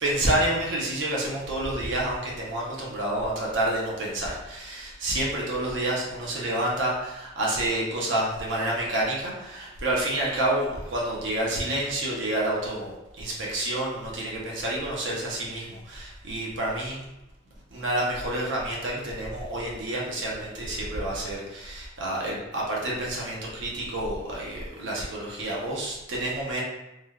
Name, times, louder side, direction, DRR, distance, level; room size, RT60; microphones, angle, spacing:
voice 1, 0.0-17.0 17.7-26.6, right 1 dB, 65° right, -4 dB, 0.6 m, -29 dB
3.1 x 2.2 x 2.2 m, 0.96 s
head